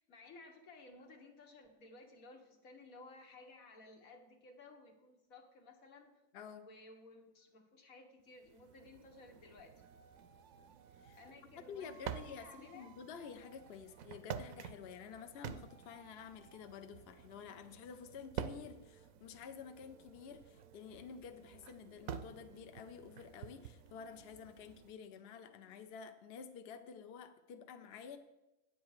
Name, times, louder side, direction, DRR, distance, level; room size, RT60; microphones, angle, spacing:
voice 1, 0.0-6.1 6.6-9.7 11.2-12.9, left 3 dB, 80° left, 3 dB, 1.7 m, -57 dB
voice 2, 6.3-6.7 11.0-28.2, left 6 dB, 55° left, 8 dB, 0.8 m, -51 dB
sound 1, 8.4-24.9, right 8 dB, 80° right, 1.0 m, -50 dB
sound 2, 9.8-11.4 11.8-19.1 19.5-25.9, right 5 dB, 55° right, 0.5 m, -67 dB
9.5 x 7.9 x 4.8 m, 0.96 s
omnidirectional pair, 1.4 m